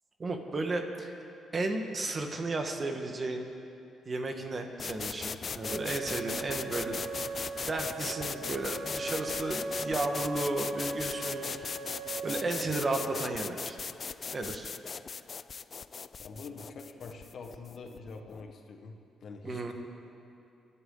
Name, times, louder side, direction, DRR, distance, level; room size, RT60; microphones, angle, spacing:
voice 1, 0.2-1.1 1.5-3.5 4.0-7.0 7.7-11.7 12.2-13.8 14.3-14.7 19.4-19.7, right 2 dB, 35° right, 4 dB, 1.6 m, -34 dB
sound 1, 4.8-18.5, left 5 dB, 40° left, 0.4 m, -39 dB
Wind instrument woodwind instrument, 5.6-13.3, right 3 dB, 70° right, 0.8 m, -39 dB
voice 2, 16.2-19.7, left 4 dB, 60° left, 4 dB, 1.5 m, -45 dB
28.0 x 11.5 x 4.0 m, 2.7 s
cardioid pair, 90°, 0 cm